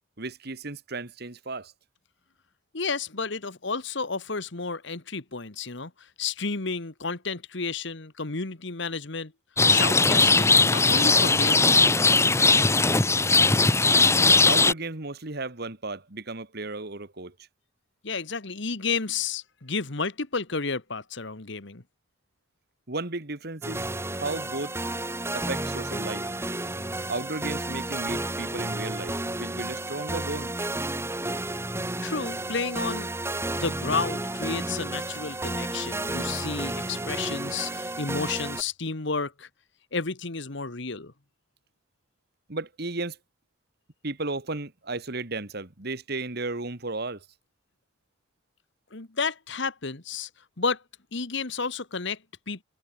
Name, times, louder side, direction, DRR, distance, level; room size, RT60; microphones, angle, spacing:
voice 1, 0.2-1.7 14.5-17.3 22.9-23.9 24.1-24.7 25.3-26.2 27.1-30.5 42.5-43.2 44.0-47.3, right 3 dB, 55° right, 1.9 m, -34 dB
voice 2, 2.7-9.3 9.7-11.8 18.0-21.8 32.0-33.1 33.5-39.5 39.9-41.1 48.9-50.3 50.6-50.8 51.1-52.6, left 4 dB, 60° left, 1.6 m, -31 dB
Rain, 9.6-14.7, left 3 dB, 15° left, 1.1 m, -19 dB
sound 1, 23.6-38.6, right 2 dB, 15° right, 1.9 m, -32 dB
head